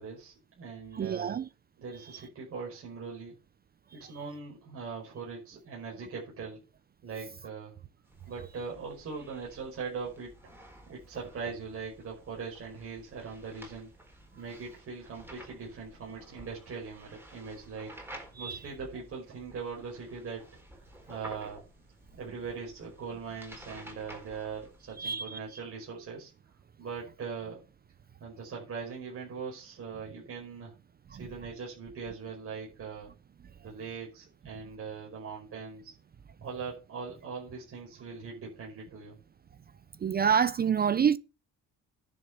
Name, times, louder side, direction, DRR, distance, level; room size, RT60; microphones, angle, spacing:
voice 1, 0.0-1.4 1.8-3.3 3.9-6.6 7.0-7.7 8.3-10.3 10.9-13.9 14.4-17.9 18.4-20.4 20.7-21.6 22.2-26.5 26.8-27.6 28.2-30.7 31.1-33.1 33.6-36.0 36.4-39.2, right 5 dB, 50° right, 5.4 m, -41 dB
voice 2, 1.0-1.5 18.4-18.6 25.0-25.4 31.1-31.2 40.0-41.2, right 7 dB, 30° right, 0.5 m, -27 dB
sound 1, 8.0-25.0, equal, 5° right, 4.1 m, -52 dB
10.5 x 6.7 x 6.9 m
cardioid pair, 130°, 31 cm